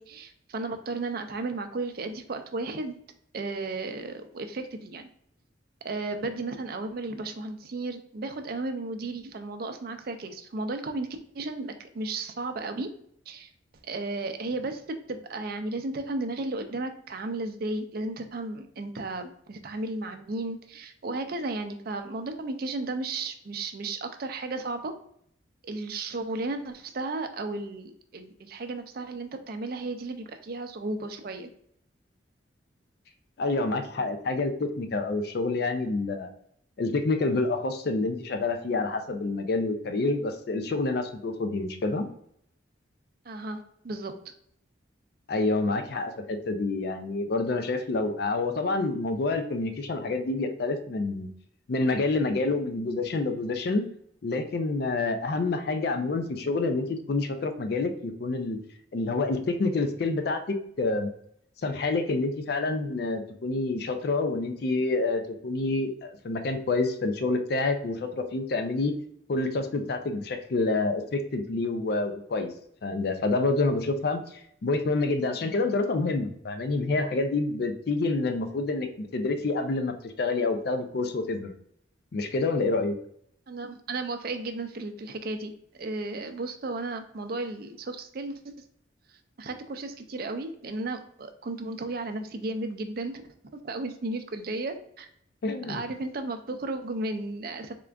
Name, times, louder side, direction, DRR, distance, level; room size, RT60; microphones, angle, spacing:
voice 1, 0.0-3.0 3.3-5.1 5.8-11.1 11.3-12.9 13.3-13.5 13.8-14.8 15.1-24.9 25.6-31.5 43.3-44.1 83.5-88.4 89.4-93.2 93.5-95.1 95.7-97.7, right 2 dB, 50° right, 7 dB, 0.4 m, -34 dB
voice 2, 33.4-36.3 36.8-42.1 45.3-51.3 51.7-53.8 54.2-58.6 58.9-61.1 61.6-68.9 69.3-72.5 72.8-81.5 82.1-82.9 95.4-95.8, left 3 dB, 55° left, 7 dB, 0.4 m, -28 dB
3.7 x 2.4 x 3.3 m, 0.68 s
head